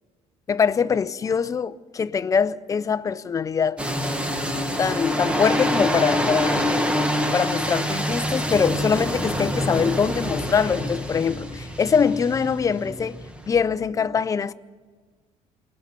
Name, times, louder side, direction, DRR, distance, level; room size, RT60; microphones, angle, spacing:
voice 1, 0.5-3.8 4.8-6.7 7.3-13.2 13.5-14.5, left 6 dB, 30° left, 0.6 m, -23 dB
sound 1, 3.8-13.6, equal, 10° right, 1.9 m, -26 dB
28.0 x 20.5 x 5.9 m
cardioid pair, 135°, 12 cm